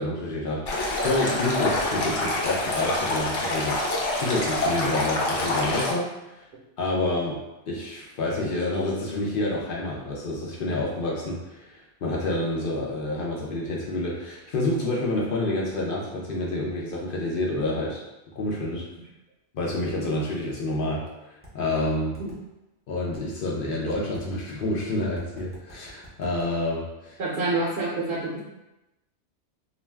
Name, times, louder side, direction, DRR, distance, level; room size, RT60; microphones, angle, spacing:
voice 1, 0.0-3.8 4.1-6.4 6.8-7.4 7.7-18.0 18.3-18.8 19.5-22.2 22.9-27.2, left 2 dB, 60° left, -3 dB, 0.6 m, -28 dB
Stream, 0.7-5.9, left 2 dB, 85° left, 0.9 m, -26 dB
sound 1, 21.4-21.5 22.1-22.4 23.1-23.2 23.9-24.2 25.2-26.5, equal, 15° right, 0.5 m, -49 dB
voice 2, 27.2-28.4, right 2 dB, 60° right, -5 dB, 0.8 m, -27 dB
2.4 x 2.2 x 3.2 m, 0.96 s
omnidirectional pair, 1.2 m